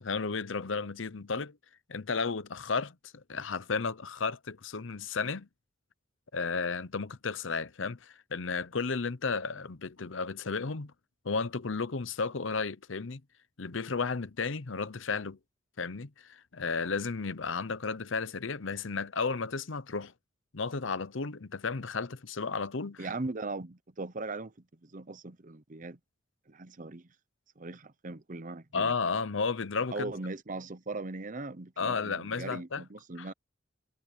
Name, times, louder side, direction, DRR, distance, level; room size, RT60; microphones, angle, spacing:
voice 1, 0.0-1.6 1.9-5.5 6.3-10.9 11.2-13.2 13.6-15.4 15.8-20.1 20.5-23.1 28.7-30.1 31.8-32.8 33.2-33.3, left 4 dB, 75° left, 0.8 m, -33 dB
voice 2, 23.0-26.0 26.5-27.1 27.6-28.9 29.9-33.3, right 3 dB, 40° right, 0.9 m, -39 dB
head